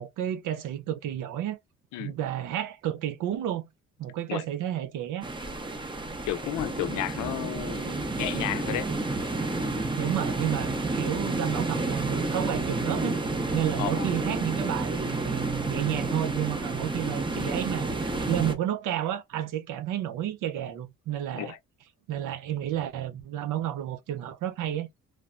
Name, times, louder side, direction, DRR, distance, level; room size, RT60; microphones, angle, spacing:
voice 1, 0.0-1.6 2.0-3.7 4.0-5.3 10.0-13.2 13.5-17.9 18.3-21.5 22.1-24.9, right 11 dB, 90° right, 0.6 m, -31 dB
sound 1, 5.2-18.5, right 2 dB, 15° right, 0.6 m, -30 dB
voice 2, 6.3-8.9 13.8-14.1 21.3-21.6, left 13 dB, 90° left, 0.5 m, -33 dB
3.3 x 2.0 x 2.4 m
cardioid pair, 90°, 30 cm